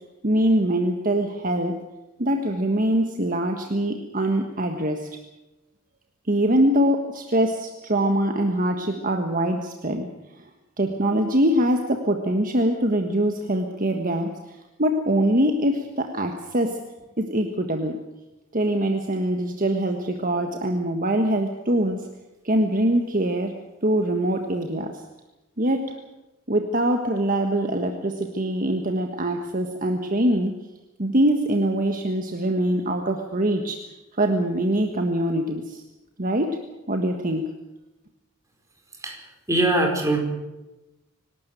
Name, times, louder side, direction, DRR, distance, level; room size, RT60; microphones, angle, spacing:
voice 1, 0.2-1.7 2.2-5.1 6.3-10.1 10.3-10.4 10.8-16.8 17.2-18.0 18.5-22.1 22.4-23.5 23.8-25.0 25.6-25.9 26.5-30.6 31.0-33.9 34.2-35.8 36.2-36.5 36.9-37.5, right 1 dB, 40° right, 4 dB, 1.5 m, -23 dB
voice 2, 39.5-40.2, right 1 dB, 15° right, 2 dB, 4.9 m, -21 dB
25.0 x 12.5 x 9.1 m, 1.0 s
head